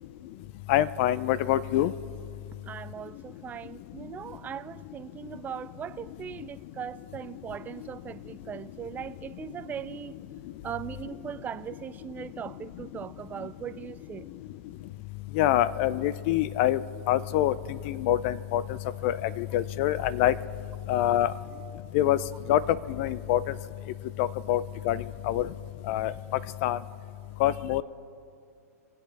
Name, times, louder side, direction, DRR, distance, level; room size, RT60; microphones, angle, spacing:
voice 1, 0.7-1.9 15.3-16.8 17.1-18.8 19.0-20.3 20.9-21.3 21.9-22.2 22.5-23.5 24.2-25.5 25.9-26.1 26.6-26.8 27.4-27.8, left 13 dB, 50° left, 18 dB, 0.5 m, -25 dB
voice 2, 2.7-10.2 10.6-14.3, right 8 dB, 20° right, 14 dB, 0.4 m, -39 dB
23.5 x 8.1 x 3.4 m, 2.4 s
hypercardioid pair, 110°, 9 cm